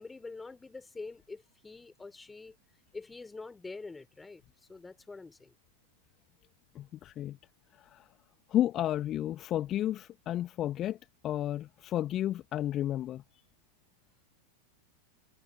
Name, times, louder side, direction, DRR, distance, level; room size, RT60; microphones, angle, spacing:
voice 1, 0.0-2.6 2.9-4.4 4.7-5.5, left 3 dB, 10° left, 4.4 m, -45 dB
voice 2, 6.7-7.4 7.8-8.1 8.5-11.0 11.2-13.2, left 12 dB, 30° left, 1.9 m, -32 dB
figure-of-eight pair, 90°, 0 cm